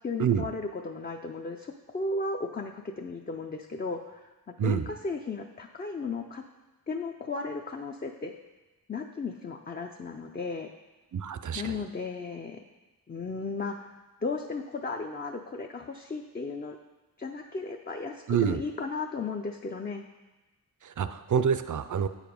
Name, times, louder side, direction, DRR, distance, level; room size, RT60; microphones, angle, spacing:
voice 1, 0.0-4.3 4.6-6.4 6.9-8.3 8.9-10.7 11.5-12.6 13.1-16.8 17.2-20.0, left 3 dB, 25° left, 3 dB, 0.4 m, -35 dB
voice 2, 11.1-11.8 18.3-18.6 20.8-22.1, right 7 dB, 55° right, 11 dB, 0.5 m, -27 dB
8.3 x 4.9 x 5.2 m, 1.2 s
wide cardioid pair, 75°, 38 cm